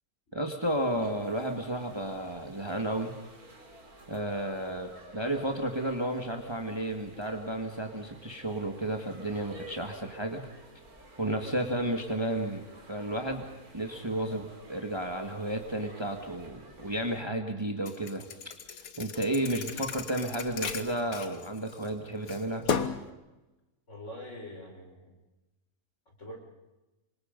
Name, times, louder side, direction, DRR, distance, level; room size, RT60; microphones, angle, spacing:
voice 1, 0.3-3.1 4.1-10.5 11.2-13.4 13.7-18.2 19.0-22.7, right 1 dB, 20° right, 4 dB, 1.9 m, -32 dB
sound 1, 0.6-17.2, right 2 dB, 90° right, 3.5 m, -52 dB
Thump thud, 17.9-21.9 22.3-23.1, left 6 dB, 75° left, 1.6 m, -35 dB
voice 2, 23.9-25.2 26.2-26.4, left 1 dB, 50° left, 0 dB, 5.7 m, -44 dB
27.5 x 25.0 x 5.3 m, 1.0 s
omnidirectional pair, 1.5 m